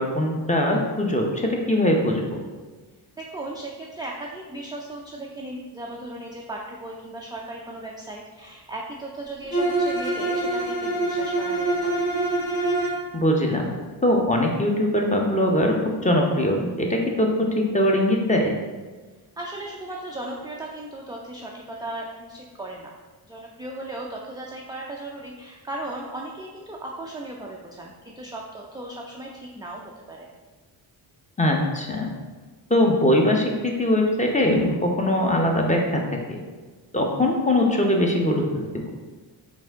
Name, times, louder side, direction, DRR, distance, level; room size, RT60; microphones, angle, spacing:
voice 1, 0.0-2.4 13.1-13.7 14.0-15.7 16.0-18.5 31.4-32.1 32.7-36.4 36.9-38.9, left 1 dB, 15° left, 1 dB, 0.7 m, -21 dB
voice 2, 3.2-12.0 19.4-22.9 23.3-30.3, right 1 dB, 10° right, -2 dB, 0.3 m, -36 dB
Bowed string instrument, 9.5-13.1, right 2 dB, 45° left, 1.4 m, -25 dB
4.2 x 2.6 x 3.5 m, 1.3 s
supercardioid pair, 50°, 50 cm